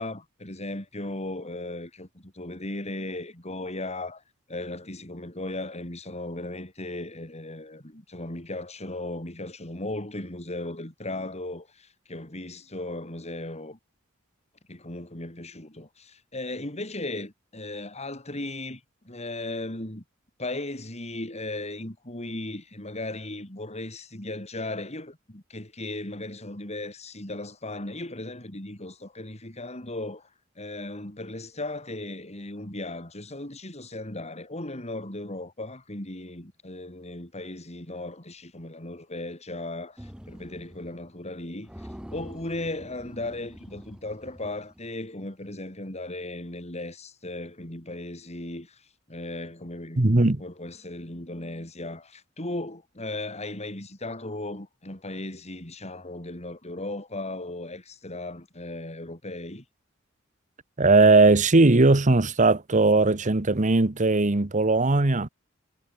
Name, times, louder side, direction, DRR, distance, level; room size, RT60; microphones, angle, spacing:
voice 1, 0.0-4.2 4.5-13.8 14.7-20.0 20.4-30.3 30.6-59.6, left 2 dB, 35° left, 4.7 m, -36 dB
sound 1, 40.0-41.0 41.3-41.4 41.7-45.1, equal, 5° right, 1.5 m, -45 dB
voice 2, 50.0-50.4 60.8-65.3, right 3 dB, 40° right, 1.1 m, -19 dB
head